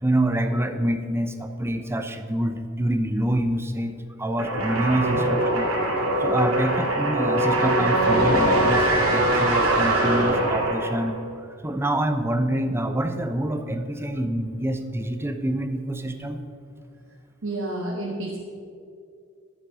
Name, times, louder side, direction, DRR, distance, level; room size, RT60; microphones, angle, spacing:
voice 1, 0.0-5.7 6.2-11.2 11.6-16.4, right 1 dB, 10° right, 7 dB, 0.7 m, -26 dB
sound 1, 4.4-11.1, right 1 dB, 85° right, 2.7 m, -22 dB
voice 2, 17.4-18.4, right 1 dB, 65° right, -3 dB, 1.6 m, -30 dB
12.0 x 8.4 x 6.2 m, 2.3 s
head